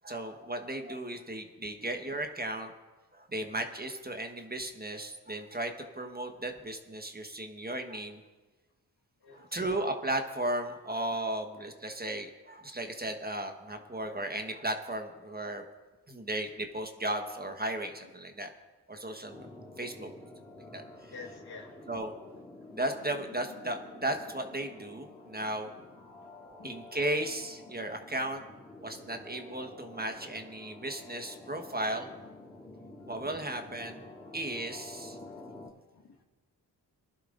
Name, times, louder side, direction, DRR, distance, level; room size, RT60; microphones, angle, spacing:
voice 1, 0.0-2.7 3.1-8.2 9.3-15.6 16.1-18.5 18.9-19.5 19.8-20.1 20.7-20.8 21.9-22.1 22.7-25.7 26.6-28.4 28.8-32.1 33.1-34.0 34.3-35.2, right 1 dB, 20° right, 5 dB, 1.3 m, -35 dB
voice 2, 9.2-9.7 20.9-21.8 25.4-25.9 26.2-26.3 26.6-26.7 35.2-35.3 35.9-36.2, left 4 dB, 65° left, 1 dB, 1.7 m, -50 dB
sound 1, 19.3-35.7, left 2 dB, 5° left, 2.8 m, -49 dB
20.0 x 11.5 x 2.6 m, 1.2 s
cardioid pair, 55°, 42 cm